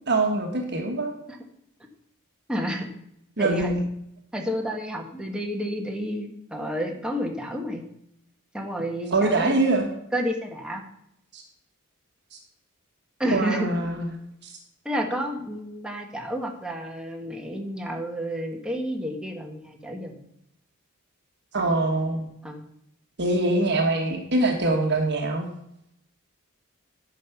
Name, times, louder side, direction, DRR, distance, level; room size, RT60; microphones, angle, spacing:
voice 1, 0.1-1.1 3.4-3.8 9.1-9.9 11.3-11.4 13.3-14.1 14.4-14.5 21.5-22.3 23.2-25.5, right 2 dB, 55° right, 3 dB, 1.3 m, -23 dB
voice 2, 2.5-2.9 3.4-3.8 4.3-7.8 8.5-9.6 10.1-10.8 13.2-13.8 14.8-20.2 22.4-22.7, equal, 5° right, 1 dB, 1.4 m, -30 dB
10.5 x 5.9 x 5.8 m, 0.77 s
head